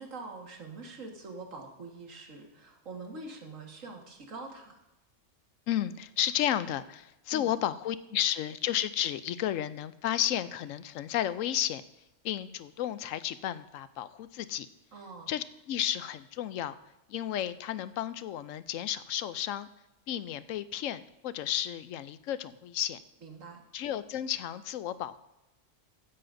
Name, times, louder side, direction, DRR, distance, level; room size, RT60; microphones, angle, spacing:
voice 1, 0.0-4.8 7.3-7.5 14.9-15.3 23.2-23.6, right 3 dB, 85° right, 2 dB, 2.0 m, -44 dB
voice 2, 5.7-11.8 12.2-14.7 15.3-16.7 17.1-19.7 20.1-23.0 23.7-25.2, left 11 dB, 80° left, 14 dB, 1.0 m, -32 dB
15.5 x 9.9 x 2.6 m, 0.96 s
omnidirectional pair, 1.3 m